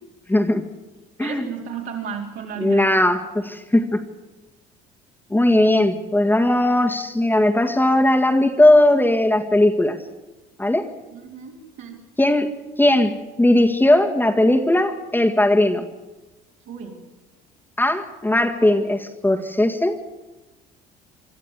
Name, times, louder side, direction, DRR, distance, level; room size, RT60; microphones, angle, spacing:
voice 1, 0.3-0.6 1.2-1.5 2.6-4.0 5.3-10.0 10.6-10.9 12.2-12.5 12.8-15.9 17.8-20.0, left 1 dB, 10° left, 3 dB, 2.0 m, -18 dB
voice 2, 1.2-3.1 11.1-12.0 16.7-17.0, right 7 dB, 65° right, 0 dB, 4.5 m, -33 dB
25.0 x 12.0 x 8.4 m, 1.1 s
supercardioid pair, 75°, 20 cm